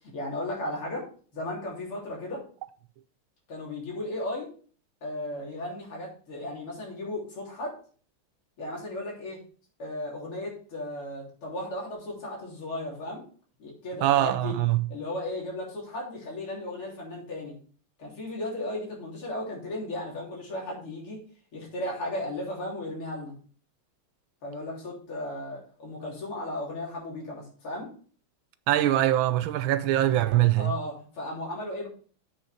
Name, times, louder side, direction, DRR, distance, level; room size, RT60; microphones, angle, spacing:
voice 1, 0.1-1.1 1.3-2.4 3.5-4.5 5.0-7.8 8.6-9.4 9.8-13.2 13.6-14.6 14.9-17.5 18.0-21.2 21.5-23.3 24.4-27.9 30.6-31.9, left 1 dB, 90° left, 4.1 m, -35 dB
voice 2, 14.0-14.8 28.7-30.7, right 13 dB, 80° right, 1.4 m, -23 dB
7.8 x 6.5 x 4.2 m
omnidirectional pair, 2.3 m